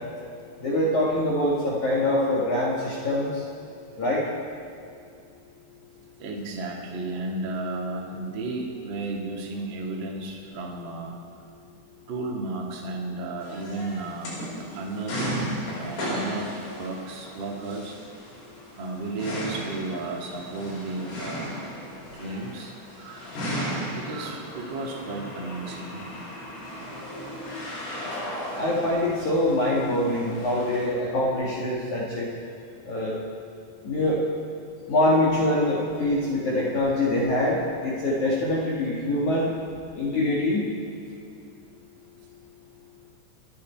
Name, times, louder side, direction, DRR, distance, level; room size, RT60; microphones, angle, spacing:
voice 1, 0.6-3.4 4.0-4.3 28.6-32.3 32.9-33.2 33.8-34.2 34.9-39.5 39.9-40.7, left 1 dB, 50° left, -6 dB, 2.5 m, -24 dB
voice 2, 6.2-11.2 12.1-14.4 14.7-15.4 15.8-18.0 18.8-21.5 22.1-22.7 23.0-26.0, right 2 dB, 50° right, -2 dB, 1.4 m, -33 dB
sound 1, 13.4-30.9, equal, 90° left, 7.5 m, -36 dB
28.0 x 10.5 x 4.5 m, 2.5 s
omnidirectional pair, 5.8 m